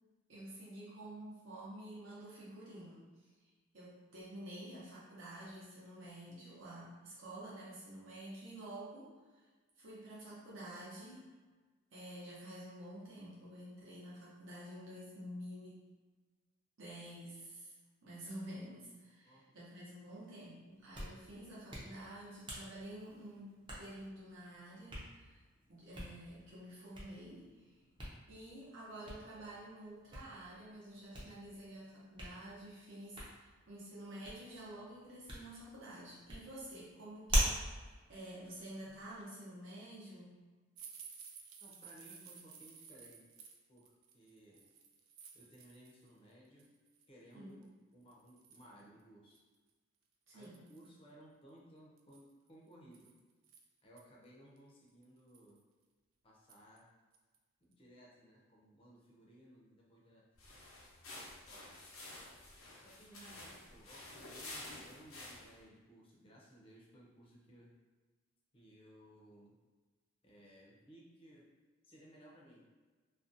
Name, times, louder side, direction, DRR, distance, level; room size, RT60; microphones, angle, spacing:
voice 1, 0.3-3.5 3.7-9.4 9.8-11.3 11.9-15.9 16.8-17.7 18.0-25.4 25.7-27.7 28.3-40.4 47.3-47.7 50.3-50.7 63.2-63.4, right 1 dB, 65° right, -8 dB, 0.7 m, -50 dB
voice 2, 19.2-19.7 41.6-43.3 43.7-44.6 45.3-46.7 47.1-49.4 50.3-53.1 53.8-55.6 56.2-56.9 57.6-60.3 61.2-61.7 62.7-67.7 68.5-69.6 70.2-71.5 71.8-72.6, equal, 25° left, -4 dB, 0.5 m, -60 dB
Hands, 20.7-39.2, equal, 25° right, 0.5 m, -44 dB
sound 1, 40.8-46.1 46.5-47.1 47.6-47.7 48.1-48.8 49.3-49.4 49.7-49.8 50.3-51.0 52.0-54.0 54.6-54.7 55.0-55.6 56.5-56.8 57.1-57.4 57.7-57.8, right 6 dB, 85° right, 0.3 m, -56 dB
sound 2, 60.4-65.6, left 2 dB, 90° left, 0.6 m, -51 dB
2.5 x 2.2 x 2.5 m, 1.3 s
head